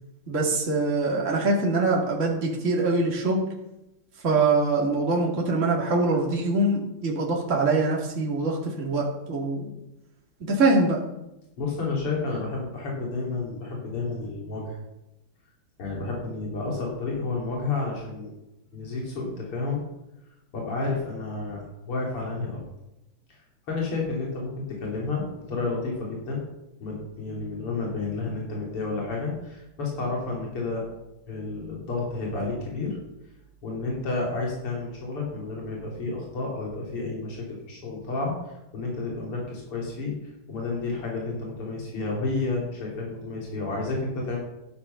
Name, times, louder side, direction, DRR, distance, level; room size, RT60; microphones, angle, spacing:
voice 1, 0.3-3.4 4.2-9.7 10.5-11.0, right 3 dB, 35° right, -3 dB, 2.9 m, -23 dB
voice 2, 11.6-14.8 15.8-18.3 18.7-19.8 20.5-22.6 23.3-26.4 26.8-30.8 31.3-33.0 33.6-44.4, left 3 dB, 85° left, -2 dB, 4.1 m, -31 dB
14.0 x 11.0 x 5.8 m, 0.91 s
omnidirectional pair, 2.4 m